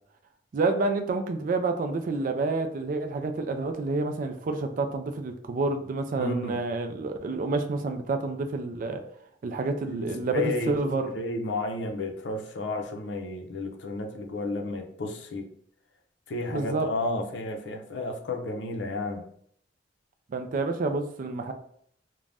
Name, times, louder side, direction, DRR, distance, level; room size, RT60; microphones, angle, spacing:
voice 1, 0.5-9.0 9.4-11.1 16.5-16.9 20.3-21.5, right 3 dB, 45° right, 6 dB, 0.3 m, -29 dB
voice 2, 6.2-6.6 9.9-10.7 11.1-15.5 16.3-19.2, left 2 dB, 70° left, 3 dB, 0.5 m, -32 dB
2.5 x 2.1 x 3.3 m, 0.65 s
head